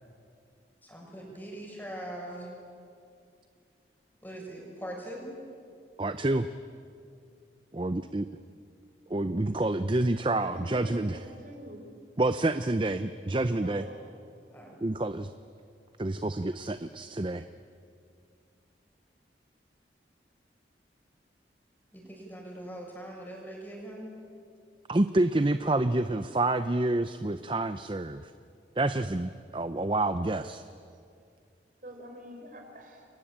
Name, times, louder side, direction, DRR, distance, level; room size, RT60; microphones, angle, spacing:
voice 1, 0.8-2.5 4.2-5.3 14.5-14.8 21.9-24.1, right 1 dB, 10° left, -1 dB, 6.6 m, -41 dB
voice 2, 6.0-6.5 7.7-8.3 9.1-11.3 12.2-13.9 14.8-15.3 16.0-17.4 24.9-28.3 28.8-30.6, right 2 dB, 30° right, 11 dB, 0.6 m, -28 dB
voice 3, 10.4-11.8 13.6-14.1 31.8-33.0, equal, 45° right, 3 dB, 4.2 m, -45 dB
29.5 x 23.0 x 8.8 m, 2.4 s
head